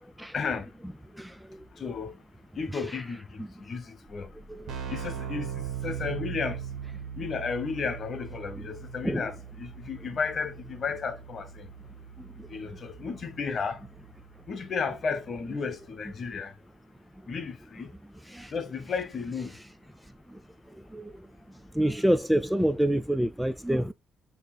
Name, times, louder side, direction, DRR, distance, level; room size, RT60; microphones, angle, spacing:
voice 1, 0.3-0.7 1.8-2.1 2.5-4.3 4.9-6.6 7.1-11.7 12.5-13.8 14.5-16.5 17.3-17.9 18.5-19.6, left 5 dB, 50° left, 1.0 m, -33 dB
voice 2, 1.1-1.6 2.7-2.8 4.5-4.6 9.0-9.2 12.4-12.5 18.3-18.5 20.3-20.4 20.9-21.3 21.7-23.9, right 1 dB, 5° right, 0.3 m, -27 dB
Keyboard (musical), 4.1-4.2 4.4-15.0, right 8 dB, 75° right, 1.5 m, -40 dB
7.8 x 2.9 x 2.2 m
cardioid pair, 90°, 0 cm